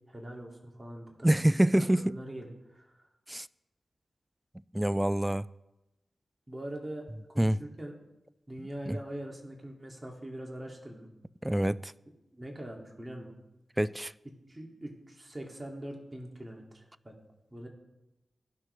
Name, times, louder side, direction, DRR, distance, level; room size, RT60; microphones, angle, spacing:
voice 1, 0.1-1.3 1.7-3.1 6.5-7.9 8.5-11.1 12.3-13.3 14.2-17.1 17.5-17.7, right 1 dB, 30° right, 2.3 m, -43 dB
voice 2, 1.2-2.2 3.3-3.5 4.7-5.4 7.4-7.6 8.9-9.0 11.4-11.9 13.8-14.1, right 1 dB, 15° right, 0.3 m, -26 dB
16.5 x 6.2 x 3.3 m
cardioid pair, 45°, 0 cm